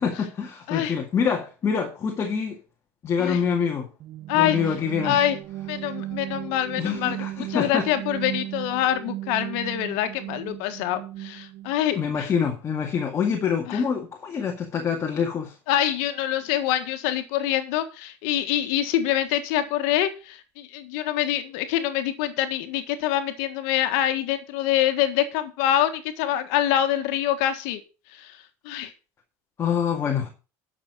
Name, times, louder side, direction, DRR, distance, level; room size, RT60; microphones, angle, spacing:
voice 1, 0.0-2.6 3.0-3.9 4.3-5.2 6.8-7.9 11.9-15.6 29.6-30.3, left 6 dB, 35° left, 2.0 m, -26 dB
sound 1, 4.0-11.8, right 14 dB, 55° right, 0.6 m, -36 dB
voice 2, 5.0-5.4 5.7-12.3 13.7-13.8 15.7-27.8 28.1-28.4 28.6-28.9, left 11 dB, 75° left, 1.6 m, -25 dB
11.5 x 6.6 x 6.1 m
supercardioid pair, 110°, 8 cm